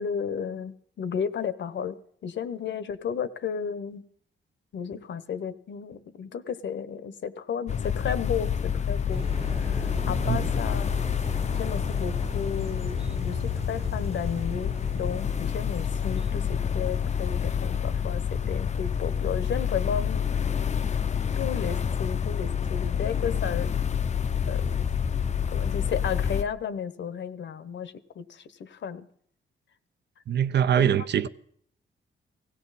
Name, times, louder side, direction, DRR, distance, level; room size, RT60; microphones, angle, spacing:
voice 1, 0.0-4.0 4.7-9.2 9.6-10.9 11.5-20.3 21.4-23.7 24.5-24.9 25.5-29.1 30.8-30.9, left 7 dB, 65° left, 1.0 m, -33 dB
sound 1, 7.7-26.4, left 7 dB, 35° left, 0.5 m, -28 dB
sound 2, 9.1-19.6, right 3 dB, 30° right, 1.1 m, -41 dB
voice 2, 30.3-31.3, right 9 dB, 60° right, 0.6 m, -23 dB
17.5 x 17.0 x 4.1 m
wide cardioid pair, 135°, 20 cm